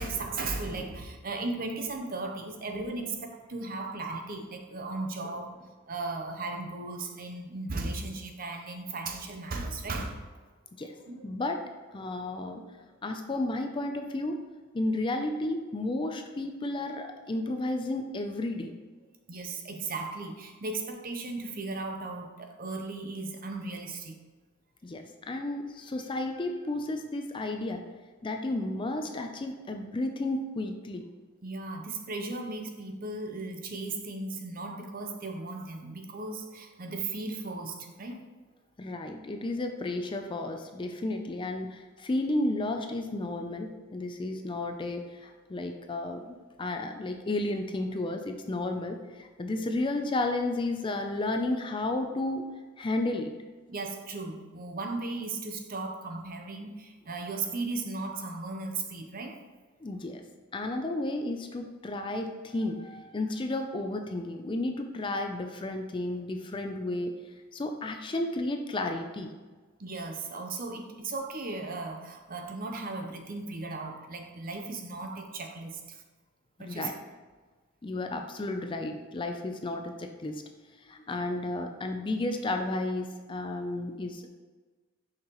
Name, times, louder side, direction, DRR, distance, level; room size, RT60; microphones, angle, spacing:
voice 1, 0.0-5.5 5.9-10.2 11.1-11.2 19.3-24.2 31.4-38.2 53.7-59.3 69.8-76.0 76.6-76.9, right 3 dB, 40° right, 4 dB, 0.7 m, -36 dB
voice 2, 11.2-11.6 11.9-12.6 13.0-14.4 14.7-18.7 24.8-27.8 28.2-31.1 38.8-52.4 52.8-53.3 59.8-60.2 60.5-67.1 67.5-69.3 76.6-76.9 77.8-80.4 80.8-84.3, left 2 dB, 25° left, 5 dB, 0.4 m, -32 dB
6.5 x 5.6 x 3.0 m, 1.3 s
head